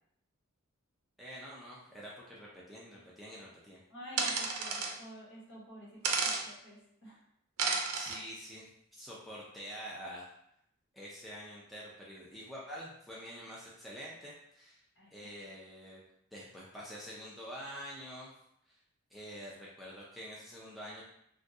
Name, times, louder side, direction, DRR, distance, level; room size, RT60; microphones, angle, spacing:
voice 1, 1.2-3.8 7.9-8.7 8.9-10.3 10.9-14.8 15.1-16.0 16.3-18.3 18.7-18.8 19.1-21.0, equal, ahead, -7 dB, 0.4 m, -46 dB
voice 2, 3.9-7.2 14.9-15.3, equal, 60° left, -7 dB, 1.3 m, -50 dB
sound 1, 4.2-4.9 6.0-6.4 7.6-8.2, right 4 dB, 75° right, 0.5 m, -32 dB
3.6 x 2.2 x 2.7 m, 0.75 s
head